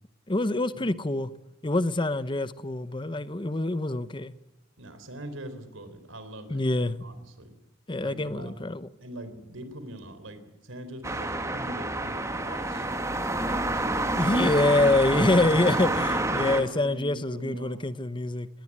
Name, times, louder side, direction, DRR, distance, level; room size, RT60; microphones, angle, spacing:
voice 1, 0.3-1.3 1.6-4.3 6.5-7.0 7.9-8.9 14.2-18.5, left 2 dB, 25° left, 0.8 m, -25 dB
voice 2, 4.8-7.6 8.0-8.5 9.0-14.6 16.1-17.8, right 1 dB, 80° right, 3.8 m, -43 dB
sound 1, 11.0-16.6, right 2 dB, 15° right, 1.7 m, -28 dB
20.0 x 18.5 x 9.8 m
head